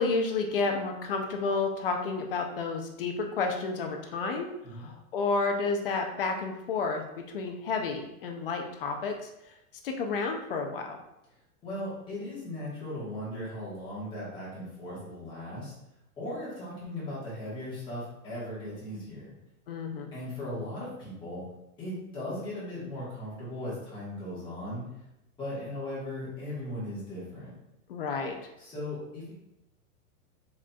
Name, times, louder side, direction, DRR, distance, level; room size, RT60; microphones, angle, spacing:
voice 1, 0.0-9.3 9.8-11.0 19.7-20.1 27.9-28.5, left 4 dB, 40° left, 4 dB, 0.5 m, -31 dB
voice 2, 11.6-15.7 16.2-19.3 20.1-21.5 21.8-24.9 25.4-27.5 28.6-29.3, left 1 dB, 10° left, -9 dB, 1.5 m, -37 dB
4.8 x 4.3 x 2.3 m, 0.88 s
supercardioid pair, 170°, 45 cm